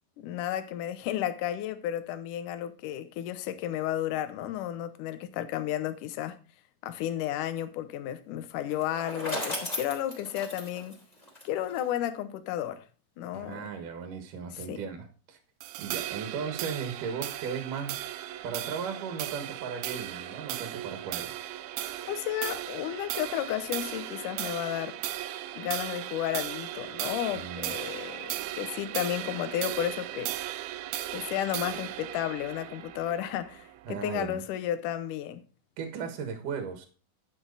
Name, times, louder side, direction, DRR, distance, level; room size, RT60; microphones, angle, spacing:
voice 1, 0.2-6.4 6.8-11.0 11.4-12.9 13.2-13.6 14.5-14.8 22.1-25.0 25.6-30.3 31.1-35.4, left 12 dB, 70° left, 2.0 m, -33 dB
Bicycle, 8.6-11.9, left 1 dB, 10° left, 3.3 m, -36 dB
voice 2, 13.3-15.4 15.8-18.0 18.4-21.5 27.3-27.7 33.9-34.4 35.8-36.9, right 6 dB, 60° right, 2.8 m, -36 dB
sound 1, 15.6-34.2, right 14 dB, 80° right, 2.4 m, -37 dB
12.0 x 7.6 x 4.0 m
omnidirectional pair, 4.6 m